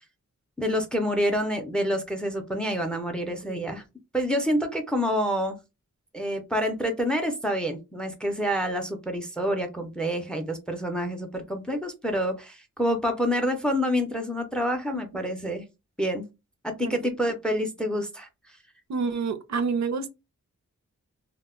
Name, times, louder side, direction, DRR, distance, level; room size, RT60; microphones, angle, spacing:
voice 1, 0.6-3.8 4.1-5.6 6.1-15.7 16.0-16.3 16.6-18.3, equal, 5° left, 0.4 m, -27 dB
voice 2, 18.9-20.1, right 5 dB, 65° right, 0.5 m, -28 dB
2.1 x 2.0 x 3.5 m
wide cardioid pair, 170°, 30 cm